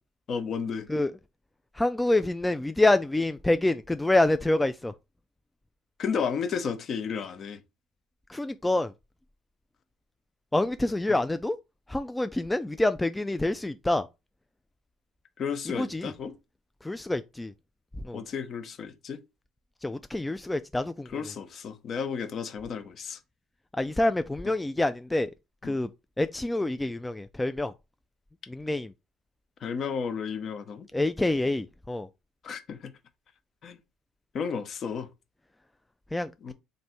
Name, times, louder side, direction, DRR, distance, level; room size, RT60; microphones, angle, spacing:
voice 1, 0.3-0.9 6.0-7.6 11.1-11.2 15.4-16.3 18.1-19.2 21.1-23.2 25.6-25.8 29.6-30.9 32.4-32.9 33.6-33.8 34.3-35.1 36.4-36.5, left 6 dB, 50° left, 0.8 m, -33 dB
voice 2, 1.7-4.9 8.3-8.9 10.5-11.6 11.9-14.1 15.7-16.1 16.8-17.5 18.0-18.2 19.8-21.2 23.7-25.3 25.6-25.9 26.2-27.7 28.5-28.9 30.9-32.1 36.1-36.5, left 2 dB, 10° left, 0.3 m, -27 dB
3.2 x 2.6 x 4.2 m
hypercardioid pair, 65°, 0 cm